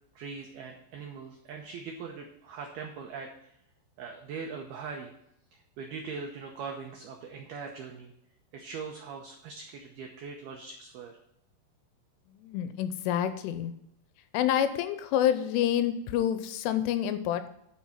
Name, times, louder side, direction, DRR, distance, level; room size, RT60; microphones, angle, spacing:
voice 1, 0.2-3.5 4.0-5.1 5.5-8.1 8.5-11.1, right 5 dB, 85° right, 2 dB, 2.1 m, -41 dB
voice 2, 12.4-13.7 14.3-17.5, left 10 dB, 85° left, 10 dB, 3.1 m, -28 dB
11.0 x 5.8 x 5.8 m, 0.76 s
omnidirectional pair, 5.9 m